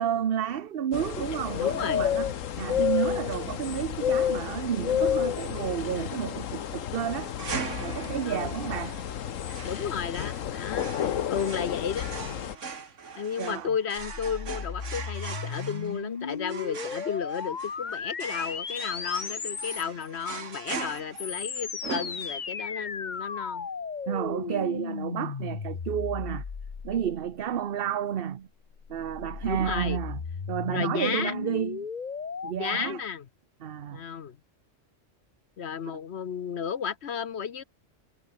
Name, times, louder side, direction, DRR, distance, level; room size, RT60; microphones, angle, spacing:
voice 1, 0.0-2.3 2.6-7.3 7.8-9.0 13.4-13.7 24.1-26.4 26.8-28.5 28.9-30.2 30.5-31.9 32.4-33.0 33.6-34.0, right 9 dB, 50° right, 0.9 m, -31 dB
sound 1, 0.9-12.6, left 9 dB, 85° left, 1.3 m, -30 dB
voice 2, 1.6-2.1 8.2-8.5 9.6-12.1 13.2-23.7 29.4-30.0 30.7-31.3 32.5-33.3 33.9-34.4 35.6-37.6, left 7 dB, 60° left, 1.2 m, -33 dB
sound 2, 7.4-22.7, right 5 dB, 70° right, 2.1 m, -41 dB
sound 3, 14.0-20.1 20.9-27.5 28.6-32.5, left 5 dB, 40° left, 1.1 m, -36 dB
omnidirectional pair, 1.3 m